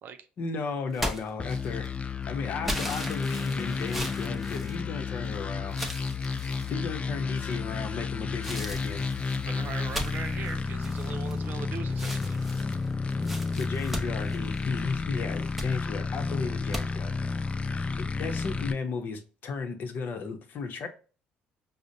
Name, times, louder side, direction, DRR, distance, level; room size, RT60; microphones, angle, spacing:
voice 1, 0.4-5.8 6.7-9.1 13.2-17.1 18.0-20.9, left 4 dB, 60° left, 0.8 m, -35 dB
sound 1, 0.9-2.0 2.6-5.3 5.7-6.7 7.4-7.8 8.4-11.6 11.9-14.9 15.3-15.7 16.7-16.8, equal, 5° right, 0.8 m, -37 dB
sound 2, 1.4-18.7, left 4 dB, 30° left, 0.4 m, -31 dB
sound 3, 9.0-16.1, equal, 30° right, 1.0 m, -51 dB
voice 2, 9.5-12.4, right 7 dB, 60° right, 0.5 m, -40 dB
4.9 x 2.1 x 2.6 m
supercardioid pair, 65°, 4 cm